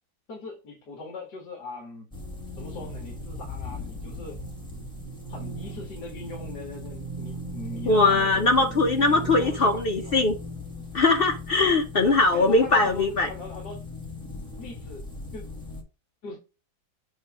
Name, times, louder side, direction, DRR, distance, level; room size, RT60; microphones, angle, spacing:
voice 1, 0.3-2.1 2.6-4.4 5.3-10.1 12.3-13.8 14.6-15.1 15.3-15.4 16.2-16.4, left 3 dB, 60° left, 2.3 m, -40 dB
sound 1, 2.1-15.8, equal, 5° left, 1.4 m, -38 dB
voice 2, 7.9-10.3 10.9-13.3, left 3 dB, 80° left, 0.5 m, -21 dB
8.0 x 2.8 x 4.9 m
omnidirectional pair, 2.0 m